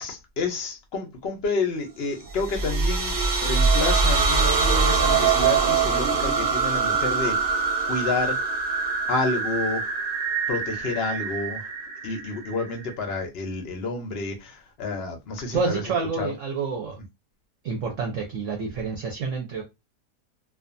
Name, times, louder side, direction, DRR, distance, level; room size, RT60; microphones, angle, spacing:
voice 1, 0.0-8.6 9.1-10.0 10.5-11.7 12.0-15.8 16.2-16.3, left 3 dB, 60° left, 0.6 m, -30 dB
sound 1, 2.3-12.9, right 4 dB, 80° right, 0.5 m, -24 dB
voice 2, 15.5-17.0 17.6-19.6, right 4 dB, 60° right, 0.8 m, -28 dB
2.4 x 2.4 x 2.5 m
omnidirectional pair, 1.8 m